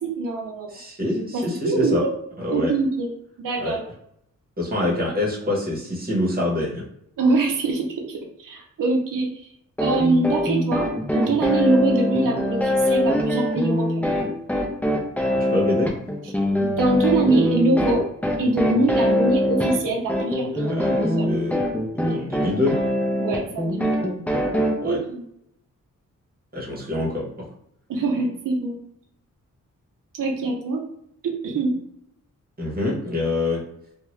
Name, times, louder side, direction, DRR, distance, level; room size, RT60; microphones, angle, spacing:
voice 1, 0.0-0.7 1.3-2.1 2.5-3.1 3.4-3.8 7.2-9.5 9.8-14.1 16.2-16.3 16.6-18.1 18.4-21.3 23.2-24.1 24.8-25.2 27.9-28.8 30.2-30.8 31.2-31.8, right 3 dB, 75° right, 0 dB, 0.6 m, -24 dB
voice 2, 0.7-2.0 2.4-2.7 3.6-3.8 4.6-6.8 15.5-15.9 20.6-21.6 22.0-22.8 24.8-25.0 26.5-27.5 32.6-33.6, left 2 dB, 30° right, -4 dB, 1.2 m, -25 dB
sound 1, 9.8-24.7, left 1 dB, 5° left, 0.6 m, -23 dB
2.7 x 2.3 x 3.1 m, 0.74 s
cardioid pair, 80°, 32 cm